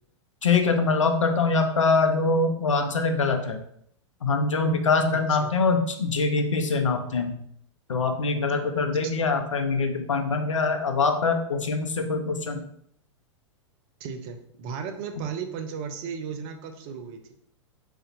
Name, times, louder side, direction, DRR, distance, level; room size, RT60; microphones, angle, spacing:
voice 1, 0.4-3.6 4.2-7.3 7.9-12.6, left 4 dB, 85° left, 6 dB, 0.6 m, -24 dB
voice 2, 14.0-17.2, right 6 dB, 40° right, 6 dB, 0.6 m, -35 dB
3.8 x 3.4 x 2.6 m, 0.68 s
figure-of-eight pair, 100°, 16 cm